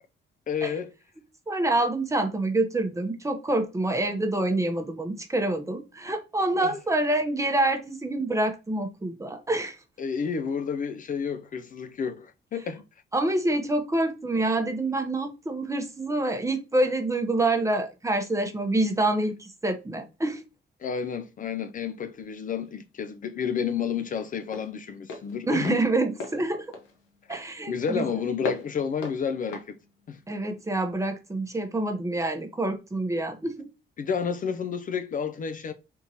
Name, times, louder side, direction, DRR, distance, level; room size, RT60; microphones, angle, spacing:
voice 1, 0.5-0.9 6.6-6.7 10.0-12.8 20.8-25.8 27.7-29.8 30.1-30.2 34.0-35.7, left 6 dB, 45° left, 0.4 m, -30 dB
voice 2, 1.5-9.8 13.1-20.4 25.5-26.8 27.3-28.1 30.3-33.7, right 2 dB, 15° right, 0.7 m, -27 dB
Walk footsteps, 22.2-30.9, left 3 dB, 85° left, 0.9 m, -41 dB
3.6 x 2.8 x 2.7 m
cardioid pair, 90°, 20 cm